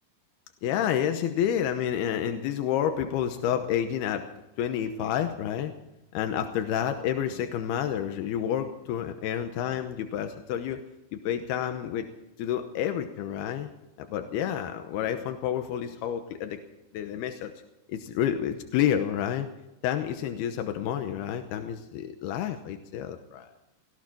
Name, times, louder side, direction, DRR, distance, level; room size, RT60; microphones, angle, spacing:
voice 1, 0.6-4.3 4.6-5.7 6.1-10.8 11.1-12.1 12.4-13.7 14.0-16.6 16.9-17.5 17.9-19.5 19.8-23.5, left 9 dB, 85° left, 7 dB, 3.0 m, -29 dB
18.0 x 16.5 x 4.5 m, 0.93 s
omnidirectional pair, 4.5 m